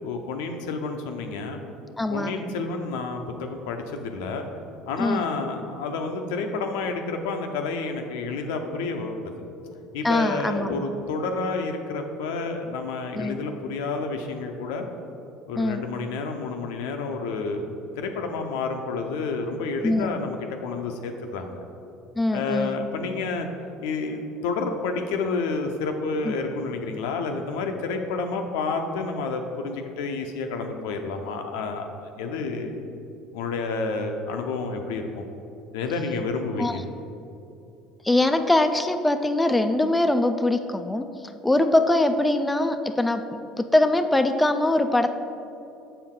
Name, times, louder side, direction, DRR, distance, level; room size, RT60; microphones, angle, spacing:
voice 1, 0.0-1.6 2.1-4.5 4.9-9.3 9.9-14.9 15.5-17.7 18.0-21.6 22.3-23.5 23.8-32.8 33.3-35.2 35.7-36.8, left 4 dB, 80° left, 5 dB, 0.6 m, -29 dB
voice 2, 2.0-2.3 5.0-5.3 10.0-10.9 13.1-13.4 15.6-15.8 19.8-20.1 22.2-22.8 26.2-26.3 36.6-36.8 38.0-41.0 41.4-45.2, left 1 dB, 10° left, 7 dB, 0.3 m, -22 dB
6.8 x 4.6 x 3.7 m, 2.7 s
supercardioid pair, 85°, 0 cm